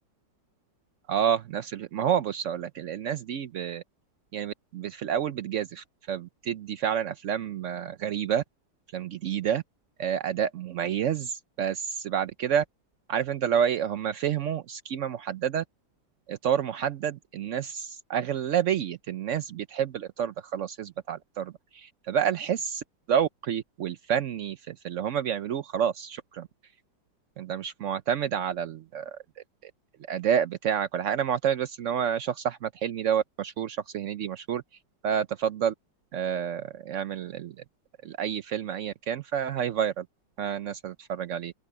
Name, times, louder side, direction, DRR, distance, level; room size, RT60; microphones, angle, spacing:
voice 1, 1.1-3.8 4.3-8.4 8.9-9.6 10.0-12.6 13.1-15.6 16.3-22.8 23.1-26.5 27.4-29.2 29.6-29.7 30.1-34.6 35.0-35.7 36.1-37.5 38.0-40.1 40.4-41.5, right 8 dB, 80° right, 0.6 m, -29 dB
open air
omnidirectional pair, 2.1 m